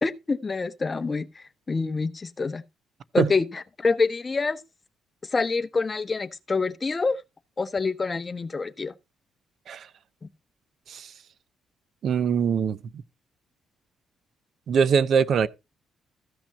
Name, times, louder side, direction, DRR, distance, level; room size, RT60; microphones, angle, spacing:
voice 1, 0.0-2.6 3.1-4.6 5.3-7.2 7.6-8.9, left 4 dB, 30° left, 0.9 m, -26 dB
voice 2, 12.0-12.8 14.7-15.5, right 7 dB, 60° right, 0.6 m, -22 dB
14.5 x 6.1 x 4.1 m
cardioid pair, 90°, 0 cm